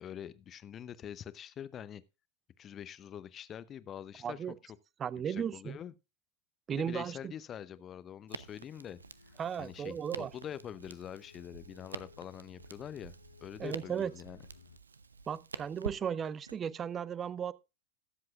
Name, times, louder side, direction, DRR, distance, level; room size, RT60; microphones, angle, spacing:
voice 1, 0.0-2.0 2.6-4.5 5.2-5.9 6.7-9.0 9.3-14.4, left 9 dB, 25° left, 0.7 m, -45 dB
voice 2, 4.2-4.5 5.0-5.8 6.7-7.3 9.4-10.3 13.6-14.1 15.3-17.5, right 8 dB, 25° right, 0.5 m, -35 dB
Crackle, 8.3-16.6, right 5 dB, 75° right, 0.5 m, -48 dB
sound 1, 8.7-14.8, left 5 dB, 75° left, 0.6 m, -59 dB
21.0 x 7.7 x 2.4 m
figure-of-eight pair, 90°, 0 cm